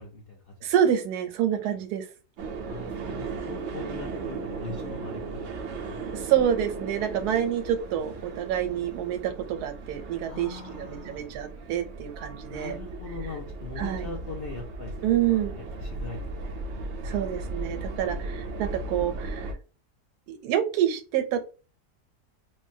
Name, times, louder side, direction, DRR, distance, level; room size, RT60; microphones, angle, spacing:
voice 1, 0.0-0.7 2.7-6.0 10.3-11.2 12.5-16.7, left 3 dB, 65° left, -2 dB, 0.5 m, -41 dB
voice 2, 0.6-2.1 6.1-12.8 13.8-14.1 15.0-15.6 17.0-19.5 20.3-21.4, right 10 dB, 85° right, 8 dB, 1.1 m, -27 dB
sound 1, 2.4-19.5, right 3 dB, 65° right, 0.7 m, -36 dB
3.1 x 2.2 x 2.6 m, 0.34 s
omnidirectional pair, 1.6 m